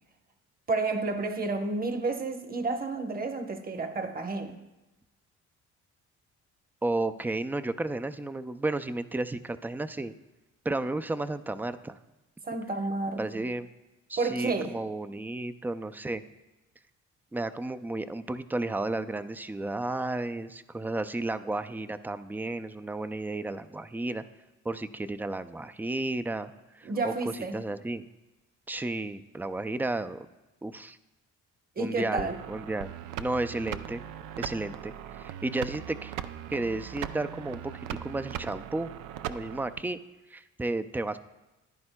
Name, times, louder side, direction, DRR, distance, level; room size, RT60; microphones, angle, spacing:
voice 1, 0.7-4.6 12.4-13.4 14.2-14.8 26.8-27.6 31.8-32.4, right 3 dB, 30° right, 1.0 m, -31 dB
voice 2, 6.8-10.1 10.7-12.0 13.2-13.7 14.1-16.2 17.3-24.2 24.6-28.1 28.7-30.3 30.6-31.0 31.8-32.9 33.2-34.0 34.4-36.1 36.5-38.9 39.3-40.0 40.3-41.2, right 2 dB, 5° right, 0.3 m, -33 dB
sound 1, 32.2-39.8, right 10 dB, 85° right, 0.5 m, -39 dB
14.0 x 10.5 x 2.2 m
cardioid pair, 90°, 30 cm